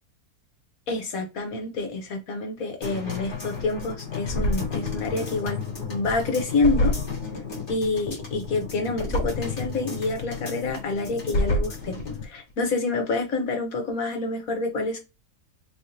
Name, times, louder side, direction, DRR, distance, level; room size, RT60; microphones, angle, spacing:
voice 1, 0.9-5.6 5.9-6.9 7.7-12.0 12.2-15.0, left 3 dB, 65° left, 4 dB, 1.5 m, -27 dB
sound 1, 2.8-12.2 12.6-12.7, left 2 dB, 35° left, 1.6 m, -30 dB
4.1 x 3.4 x 2.7 m, 0.25 s
omnidirectional pair, 1.6 m